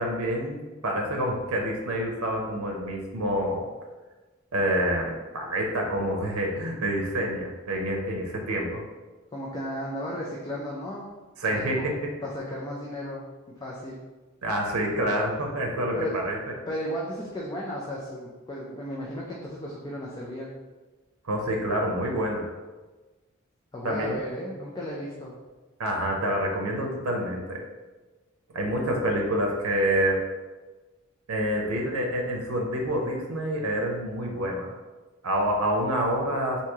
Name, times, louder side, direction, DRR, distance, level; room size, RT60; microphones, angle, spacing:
voice 1, 0.0-3.7 4.5-8.8 11.4-11.9 14.4-16.4 21.2-22.4 23.8-24.2 25.8-27.6 28.5-30.2 31.3-34.7 35.2-36.6, equal, 90° right, 1 dB, 0.6 m, -27 dB
voice 2, 9.3-11.1 11.5-12.0 12.2-13.2 13.6-14.0 15.9-16.2 16.7-20.5 23.7-25.3, equal, 20° left, -4 dB, 0.4 m, -34 dB
3.0 x 2.7 x 3.5 m, 1.2 s
head